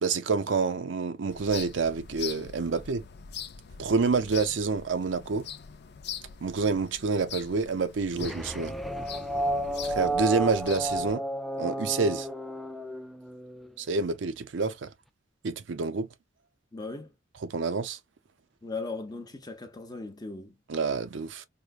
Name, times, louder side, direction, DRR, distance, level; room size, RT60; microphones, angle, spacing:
voice 1, 0.0-3.0 3.8-5.5 6.4-8.8 9.8-11.2 11.6-12.3 13.8-14.9 15.4-16.1 17.4-18.0 20.7-21.5, right 4 dB, 70° right, 0.5 m, -28 dB
sound 1, 1.3-11.1, left 8 dB, 60° left, 0.5 m, -43 dB
sound 2, 8.1-13.7, right 1 dB, ahead, 0.3 m, -32 dB
voice 2, 16.7-17.1 18.6-20.6, left 3 dB, 20° left, 0.8 m, -38 dB
4.7 x 2.1 x 2.4 m
head